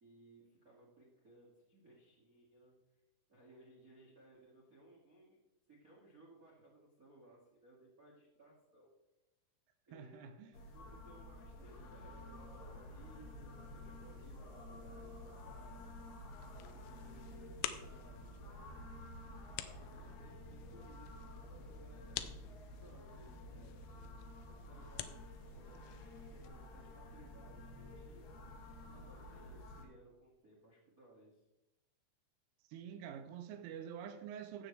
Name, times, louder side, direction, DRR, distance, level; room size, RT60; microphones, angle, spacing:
voice 1, 0.0-2.7 3.3-5.4 5.7-8.9 9.9-10.3 10.7-15.9 16.5-18.7 19.6-22.4 22.8-23.8 24.5-28.2 28.9-31.4, right 2 dB, 55° right, 0.9 m, -62 dB
voice 2, 9.9-10.5 32.7-34.7, right 8 dB, 80° right, 3.2 m, -47 dB
sound 1, 10.5-29.8, left 1 dB, 65° left, 2.3 m, -51 dB
sound 2, 16.3-26.5, left 12 dB, 80° left, 3.1 m, -50 dB
16.0 x 7.2 x 3.4 m
omnidirectional pair, 6.0 m